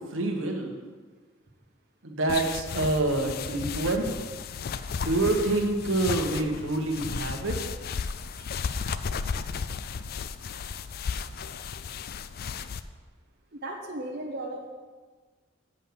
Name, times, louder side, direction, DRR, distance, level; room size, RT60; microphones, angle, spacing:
voice 1, 0.1-0.7 2.0-4.1 5.0-7.6, right 2 dB, 85° right, 2 dB, 1.2 m, -27 dB
sound 1, 2.3-12.8, left 6 dB, 50° left, 0.3 m, -34 dB
voice 2, 8.3-8.6 13.5-14.7, right 1 dB, 50° right, 0 dB, 0.9 m, -37 dB
8.1 x 5.4 x 6.9 m, 1.4 s
head